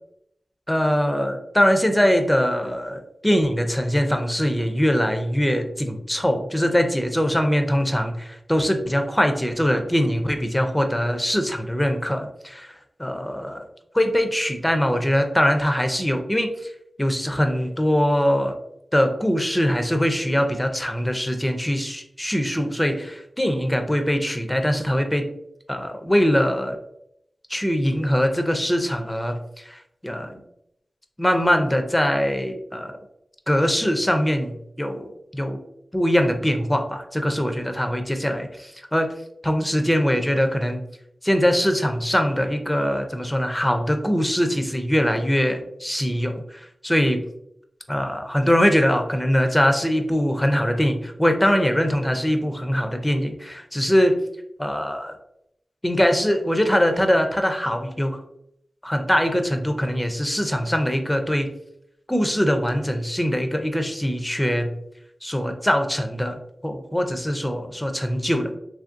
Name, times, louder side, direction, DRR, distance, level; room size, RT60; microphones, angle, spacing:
voice 1, 0.7-12.7 13.0-13.7 13.9-16.5 17.0-18.5 18.9-25.3 25.7-26.8 27.5-29.4 29.7-30.4 31.2-32.9 33.5-35.1 35.4-35.6 35.9-39.1 39.4-40.8 41.2-47.2 47.9-54.2 54.6-55.1 55.8-58.2 58.8-61.5 62.1-64.7 65.2-68.5, equal, 10° left, 5 dB, 0.4 m, -22 dB
3.0 x 2.6 x 2.5 m, 0.76 s
wide cardioid pair, 60°, 0 cm